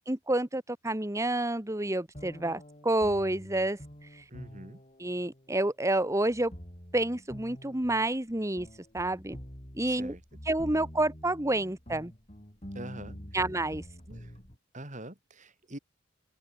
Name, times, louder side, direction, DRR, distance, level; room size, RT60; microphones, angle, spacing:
voice 1, 0.1-3.8 5.0-6.5 6.9-8.7 8.9-9.4 9.8-10.1 10.5-12.1 13.3-13.8, right 1 dB, 15° right, 1.5 m, -29 dB
sound 1, 2.1-14.6, equal, 30° left, 5.9 m, -47 dB
voice 2, 4.3-4.8 9.8-10.2 12.7-13.4 14.1-14.3 14.7-15.8, right 1 dB, 35° right, 4.6 m, -44 dB
open air
head